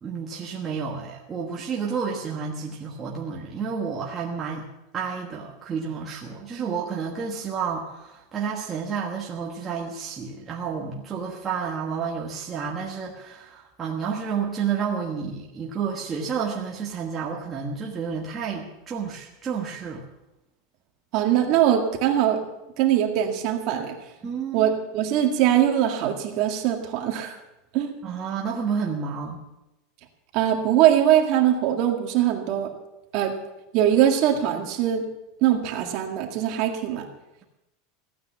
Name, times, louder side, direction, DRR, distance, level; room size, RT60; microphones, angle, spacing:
voice 1, 0.0-4.6 4.9-20.0 24.2-24.7 28.0-29.4, right 6 dB, 20° right, -3 dB, 1.3 m, -30 dB
voice 2, 21.1-22.4 22.8-23.9 24.5-27.3 27.7-27.9 30.3-32.7 33.1-33.3 33.7-35.0 35.4-37.1, right 11 dB, 40° right, 3 dB, 1.9 m, -22 dB
15.5 x 9.4 x 7.2 m, 0.95 s
supercardioid pair, 175°, 0 cm